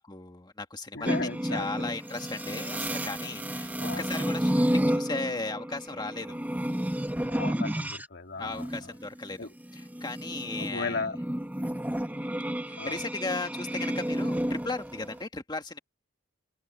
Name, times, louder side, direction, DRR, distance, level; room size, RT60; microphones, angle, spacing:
voice 1, 0.0-1.2 1.4-6.4 8.4-11.1 12.6-15.8, left 3 dB, 20° left, 1.9 m, -36 dB
voice 2, 0.9-2.0 3.8-4.1 7.3-8.7 9.4-9.5 10.6-11.2 12.8-13.0, left 3 dB, 55° left, 2.5 m, -35 dB
sound 1, 1.1-8.1 8.4-15.2, equal, 10° right, 0.9 m, -31 dB
head